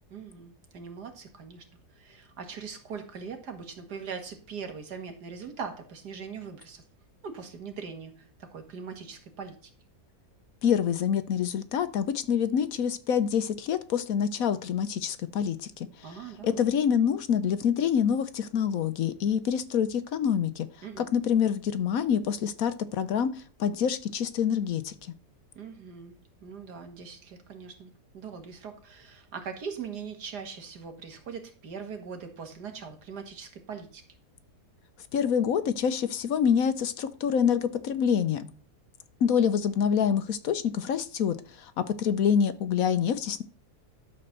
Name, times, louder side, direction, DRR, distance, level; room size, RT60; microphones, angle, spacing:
voice 1, 0.1-1.6 1.9-6.8 7.2-9.7 16.0-16.6 20.8-21.1 25.6-34.0, right 6 dB, 75° right, 6 dB, 2.2 m, -41 dB
voice 2, 10.6-16.2 16.4-20.7 21.0-24.9 35.1-38.5 39.2-43.4, left 8 dB, 65° left, 13 dB, 1.1 m, -26 dB
12.0 x 4.3 x 6.6 m, 0.40 s
omnidirectional pair, 1.7 m